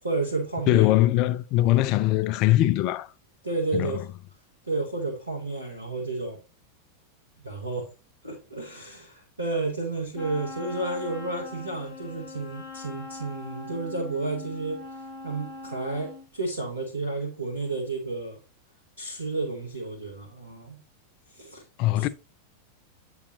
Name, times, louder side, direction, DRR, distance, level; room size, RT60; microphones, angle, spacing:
voice 1, 0.0-0.9 3.4-4.1 4.7-6.4 7.4-7.9 8.2-14.8 15.2-18.4 19.0-20.8 21.3-21.6 21.9-22.1, right 3 dB, 80° right, 1.3 m, -31 dB
voice 2, 0.7-3.1 3.7-4.0 21.8-22.1, left 15 dB, 40° left, 0.3 m, -21 dB
Wind instrument woodwind instrument, 10.1-16.3, left 3 dB, 25° left, 2.4 m, -41 dB
8.3 x 4.7 x 2.8 m
figure-of-eight pair, 90°, 0 cm